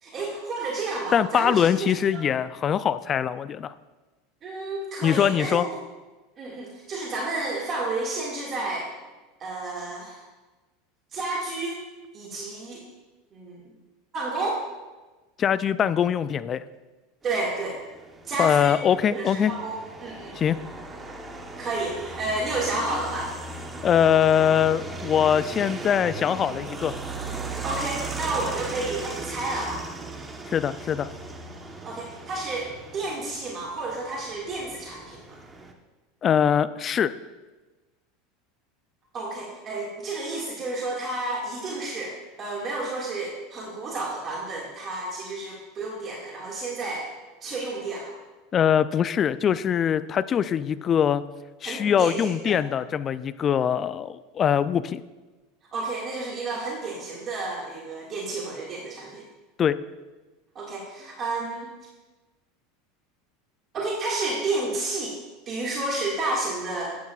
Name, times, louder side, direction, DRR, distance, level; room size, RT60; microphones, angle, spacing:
voice 1, 0.0-2.2 4.4-5.7 6.4-8.9 9.4-10.2 11.1-11.8 12.1-12.8 13.3-13.6 14.1-14.6 17.2-17.8 18.2-18.7 19.1-19.7 20.0-20.3 21.6-23.3 27.6-29.8 31.8-35.2 39.1-47.1 47.4-48.2 51.6-52.6 55.7-59.3 60.6-61.7 63.7-65.2 65.5-67.0, right 2 dB, 35° right, -3 dB, 2.0 m, -31 dB
voice 2, 1.1-3.7 5.0-5.7 15.4-16.6 18.4-19.5 20.4-20.6 23.8-26.9 30.5-31.1 36.2-37.1 48.5-51.2 51.6-55.0 59.6-59.8, left 8 dB, 35° left, 15 dB, 0.4 m, -22 dB
sound 1, 17.3-35.7, right 3 dB, 20° right, 1.1 m, -38 dB
12.0 x 9.3 x 2.4 m, 1.2 s
hypercardioid pair, 90°, 0 cm